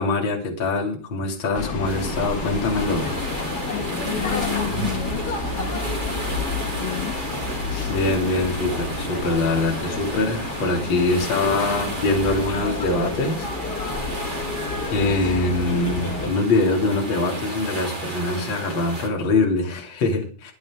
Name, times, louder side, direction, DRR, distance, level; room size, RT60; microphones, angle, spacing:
voice 1, 0.0-3.1 7.7-13.5 14.9-20.5, left 3 dB, 30° left, 1 dB, 3.1 m, -23 dB
sound 1, 1.5-16.3, left 3 dB, 90° left, 0.8 m, -30 dB
sound 2, 1.8-19.1, right 1 dB, 20° right, 1.2 m, -33 dB
sound 3, 3.3-8.3, right 1 dB, 35° right, 6.9 m, -37 dB
voice 2, 3.7-5.8 6.8-7.2, left 11 dB, 75° left, 6 dB, 3.7 m, -32 dB
23.0 x 9.3 x 3.8 m, 0.37 s
omnidirectional pair, 5.5 m